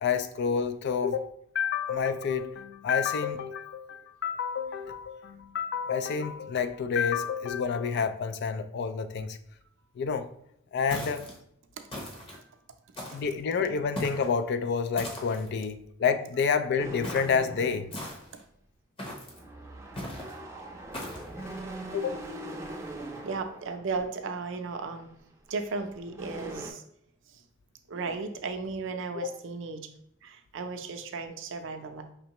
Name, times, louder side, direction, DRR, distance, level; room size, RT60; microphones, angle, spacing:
voice 1, 0.0-9.4 10.0-10.3 10.7-11.3 13.1-17.9 21.4-21.6 21.9-22.2 29.1-29.4, left 6 dB, 55° left, 0.3 m, -29 dB
sound 1, 10.9-11.4 11.9-12.4 13.0-13.4 13.9-14.3 15.0-15.5 17.0-17.4 17.9-18.4 19.0-19.4 20.0-20.3 20.9-21.3, left 1 dB, 25° left, 0.9 m, -38 dB
sound 2, 16.8-18.4 19.3-24.1 24.7-25.0 25.7-25.8 26.0-26.7, right 1 dB, 15° right, 0.5 m, -41 dB
voice 2, 23.2-25.1 25.5-26.8 27.9-29.9 30.2-32.0, right 4 dB, 65° right, 0.5 m, -35 dB
5.3 x 3.0 x 2.9 m
head